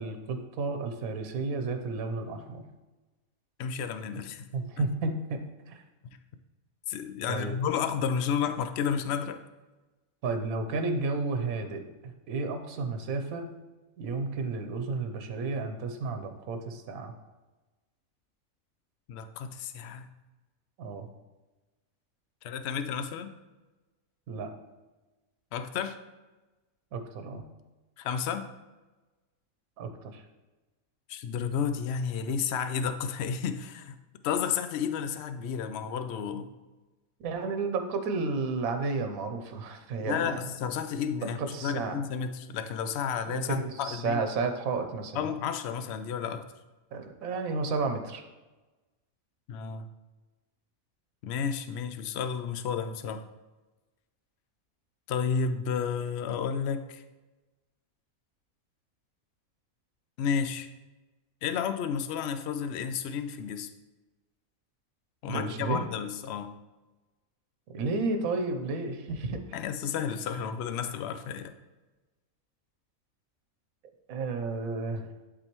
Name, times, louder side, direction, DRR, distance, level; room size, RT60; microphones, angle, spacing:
voice 1, 0.0-2.6 4.5-5.8 7.3-7.6 10.2-13.5 14.0-17.1 20.8-21.1 24.3-24.5 26.9-27.4 29.8-30.2 37.2-40.6 41.2-42.0 43.3-45.3 46.9-48.2 65.2-65.9 67.7-69.6 74.1-75.1, right 3 dB, 80° right, 6 dB, 1.2 m, -32 dB
voice 2, 3.6-4.5 4.8-4.9 6.0-6.2 6.9-9.4 19.1-20.1 22.4-23.3 25.5-26.0 28.0-28.5 31.1-34.0 34.2-36.5 40.0-44.2 45.1-46.5 49.5-49.9 51.2-53.2 55.1-57.0 60.2-60.7 61.4-63.7 65.2-66.5 69.5-71.5, left 7 dB, 65° left, 9 dB, 0.7 m, -32 dB
11.0 x 4.0 x 3.0 m, 1.2 s
omnidirectional pair, 1.5 m